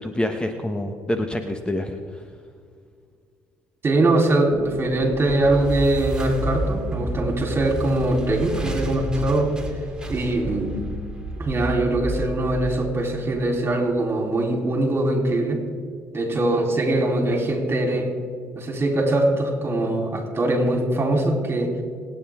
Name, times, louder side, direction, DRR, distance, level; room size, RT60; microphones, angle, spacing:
voice 1, 0.0-2.2, left 1 dB, 15° left, 6 dB, 1.1 m, -27 dB
voice 2, 3.8-9.5 10.1-10.7 11.4-15.6 16.1-18.1 18.6-21.7, right 2 dB, 35° right, 1 dB, 3.9 m, -22 dB
sound 1, 4.5-13.7, equal, 10° right, 2.3 m, -31 dB
26.5 x 9.6 x 3.7 m, 2.1 s
supercardioid pair, 70°, 7 cm